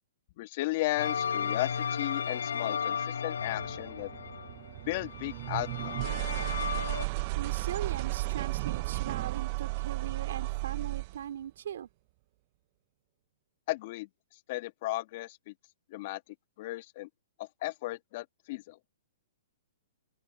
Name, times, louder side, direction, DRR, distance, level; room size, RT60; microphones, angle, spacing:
voice 1, 0.4-4.1 4.9-6.0 13.7-14.1 14.5-15.5 15.9-16.2 16.6-17.1 17.4-18.8, left 18 dB, 45° left, 1.9 m, -35 dB
sound 1, 1.0-7.1, left 7 dB, 80° left, 0.3 m, -34 dB
sound 2, 3.4-11.2, right 23 dB, 40° right, 0.5 m, -34 dB
voice 2, 7.4-11.9, right 9 dB, 70° right, 4.0 m, -39 dB
open air
hypercardioid pair, 140°, 0 cm